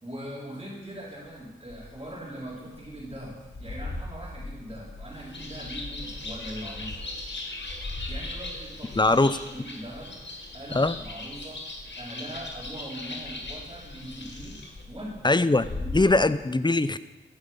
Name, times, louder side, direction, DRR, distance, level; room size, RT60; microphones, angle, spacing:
voice 1, 0.0-7.1 8.1-10.2 10.5-16.3, right 1 dB, 25° right, -7 dB, 4.0 m, -41 dB
sound 1, 0.9-12.0 12.3-12.8 13.1-16.0, left 2 dB, 90° left, 2.5 m, -41 dB
Bird, 5.1-14.8, left 2 dB, 65° left, 2.5 m, -40 dB
voice 2, 9.0-9.4 10.7-11.0 15.2-15.7 15.9-17.0, left 2 dB, 20° left, 14 dB, 0.7 m, -21 dB
14.5 x 11.0 x 5.5 m, 1.1 s
cardioid pair, 45°, 20 cm